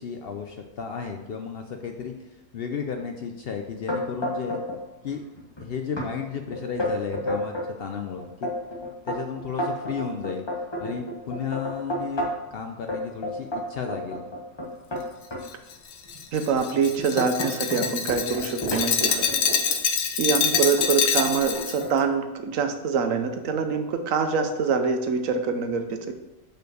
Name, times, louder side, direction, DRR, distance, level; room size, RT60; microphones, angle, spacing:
voice 1, 0.0-2.1 2.5-4.6 5.0-5.2 5.6-8.5 9.1-10.4 10.8-14.2, left 6 dB, 60° left, 4 dB, 0.7 m, -33 dB
sound 1, 3.9-4.8 5.1-5.6 6.0-6.1 6.5-7.7 8.2-12.5 12.9-15.4 16.1-16.2 16.7-19.8 20.5-20.9 21.2-21.9, equal, 20° left, 1.2 m, -31 dB
Glass, 15.4-21.8, left 7 dB, 80° left, 1.1 m, -26 dB
voice 2, 16.3-19.3 20.2-26.1, right 5 dB, 75° right, 7 dB, 1.1 m, -25 dB
5.3 x 4.4 x 6.2 m, 1.0 s
omnidirectional pair, 1.4 m